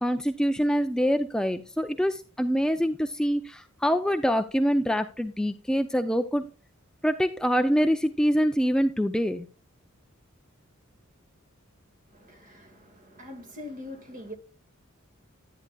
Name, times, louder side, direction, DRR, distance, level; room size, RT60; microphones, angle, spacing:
voice 1, 0.0-6.5 7.0-9.5, equal, 5° left, 0.4 m, -25 dB
voice 2, 12.1-14.3, left 1 dB, 40° right, 1.8 m, -43 dB
10.5 x 10.0 x 2.3 m
head